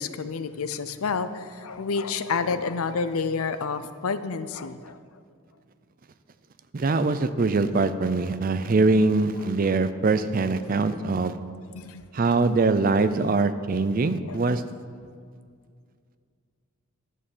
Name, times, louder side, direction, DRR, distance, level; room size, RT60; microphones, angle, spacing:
voice 1, 0.0-5.0 11.7-12.0 14.2-14.4, left 5 dB, 75° left, 12 dB, 0.6 m, -29 dB
voice 2, 6.7-11.4 12.1-14.6, right 3 dB, 40° right, 12 dB, 0.4 m, -23 dB
11.0 x 6.6 x 7.3 m, 2.2 s
head